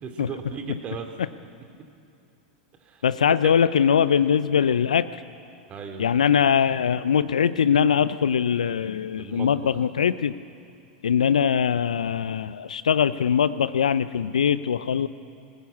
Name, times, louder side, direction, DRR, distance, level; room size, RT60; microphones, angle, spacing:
voice 1, 0.0-1.1 2.8-3.0 3.4-3.5 5.7-6.1 9.2-9.7, right 6 dB, 30° right, 5 dB, 2.6 m, -36 dB
voice 2, 3.0-5.1 6.0-10.3 11.0-15.1, left 7 dB, 75° left, 15 dB, 0.6 m, -22 dB
20.0 x 19.0 x 8.5 m, 2.6 s
figure-of-eight pair, 90°, 4 cm